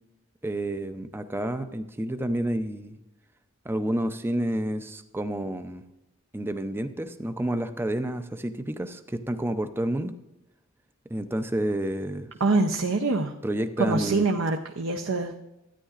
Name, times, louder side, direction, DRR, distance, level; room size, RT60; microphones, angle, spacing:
voice 1, 0.4-3.0 3.6-5.8 6.3-10.1 11.1-12.3 13.4-14.3, right 1 dB, 10° right, 9 dB, 0.5 m, -29 dB
voice 2, 12.4-13.3 13.8-15.4, right 3 dB, 65° right, 4 dB, 0.7 m, -25 dB
13.0 x 9.7 x 2.5 m, 0.95 s
head